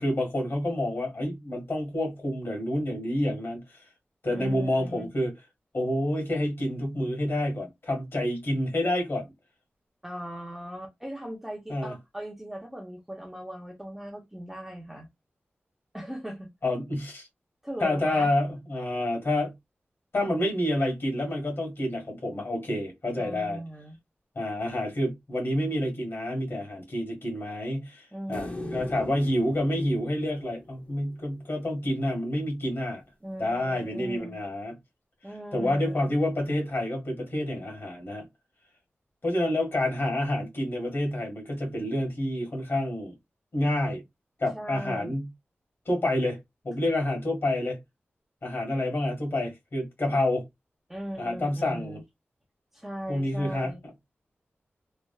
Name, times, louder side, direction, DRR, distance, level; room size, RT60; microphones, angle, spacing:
voice 1, 0.0-3.6 4.2-5.3 5.7-9.3 11.7-11.9 16.6-17.3 17.8-19.5 20.1-23.6 24.3-33.0 33.4-34.8 35.5-38.3 39.2-43.1 43.5-44.0 44.4-45.3 45.8-46.4 46.6-47.8 48.4-50.4 51.2-52.0 53.1-53.7, left 1 dB, 60° left, 1.6 m, -28 dB
voice 2, 4.3-5.1 10.0-15.1 15.9-16.5 17.6-18.3 23.2-24.0 28.1-28.9 33.2-34.4 35.2-36.1 44.5-45.2 50.9-52.0 52.7-53.8, equal, 10° right, 0.8 m, -39 dB
sound 1, 28.3-31.6 34.2-34.3, left 2 dB, 35° left, 0.8 m, -41 dB
3.2 x 2.4 x 2.3 m
wide cardioid pair, 100°, 4 cm